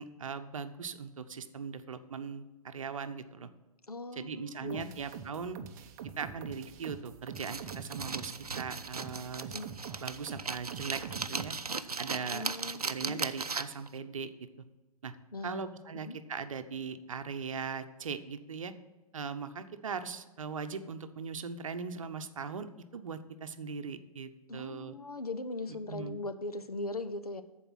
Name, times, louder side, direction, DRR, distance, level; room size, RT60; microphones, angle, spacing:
voice 1, 0.0-3.5 4.1-5.6 6.2-9.6 10.0-11.0 11.3-11.5 12.0-12.4 12.8-14.3 15.0-15.1 15.4-18.7 19.1-22.7 22.9-24.9 25.9-26.2, right 5 dB, 60° right, 9 dB, 0.8 m, -39 dB
voice 2, 3.9-4.9 9.5-9.7 12.3-13.2 15.3-15.7 16.0-16.2 24.5-27.4, left 2 dB, 85° left, 11 dB, 0.8 m, -39 dB
sound 1, 4.7-11.5, right 7 dB, 30° right, 0.7 m, -45 dB
sound 2, 7.4-13.9, right 4 dB, 85° right, 0.6 m, -37 dB
13.5 x 4.6 x 5.7 m, 1.2 s
figure-of-eight pair, 125°, 19 cm